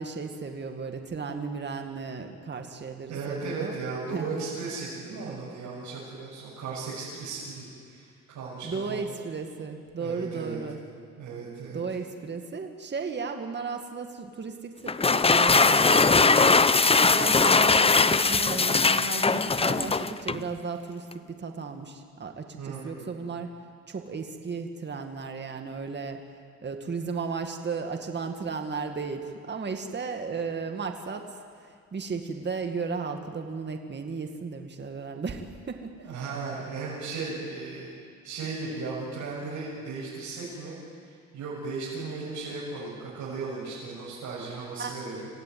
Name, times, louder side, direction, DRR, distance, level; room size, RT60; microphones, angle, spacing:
voice 1, 0.0-3.8 4.1-4.4 8.6-10.8 11.7-23.5 23.9-26.2 26.6-31.2 31.6-36.1 44.8-44.9, right 5 dB, 35° right, 5 dB, 2.1 m, -35 dB
voice 2, 3.1-9.1 10.0-10.6 11.2-11.8 22.6-23.1 36.0-37.9 38.2-45.3, right 4 dB, 70° right, -7 dB, 7.3 m, -36 dB
sound 1, 14.9-20.5, left 4 dB, 20° left, 0.8 m, -20 dB
27.0 x 16.5 x 9.5 m, 2.1 s
cardioid pair, 90°, 30 cm